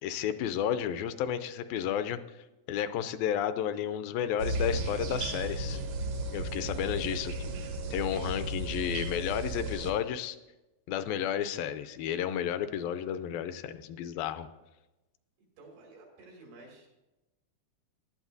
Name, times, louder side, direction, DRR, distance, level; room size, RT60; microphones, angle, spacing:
voice 1, 0.0-5.8 6.3-7.4 7.9-10.4 10.9-14.5, left 9 dB, 80° left, 10 dB, 2.2 m, -32 dB
sound 1, 4.4-9.9, right 2 dB, 75° right, 1.4 m, -34 dB
voice 2, 15.4-16.9, right 2 dB, 90° right, -1 dB, 4.5 m, -52 dB
17.5 x 11.5 x 2.7 m, 1.0 s
omnidirectional pair, 4.3 m